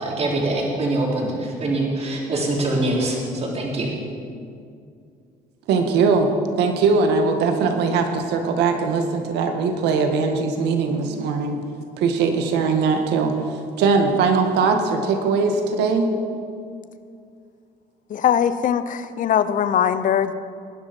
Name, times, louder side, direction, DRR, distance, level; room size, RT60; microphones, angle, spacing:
voice 1, 0.0-3.9, right 2 dB, 40° right, -3 dB, 3.7 m, -24 dB
voice 2, 5.7-6.3 6.6-11.6 12.0-13.4 13.8-16.1, right 4 dB, 85° right, 5 dB, 1.8 m, -20 dB
voice 3, 18.1-20.3, left 9 dB, 50° left, 13 dB, 0.8 m, -21 dB
19.0 x 10.5 x 5.3 m, 2.3 s
cardioid pair, 110°, 17 cm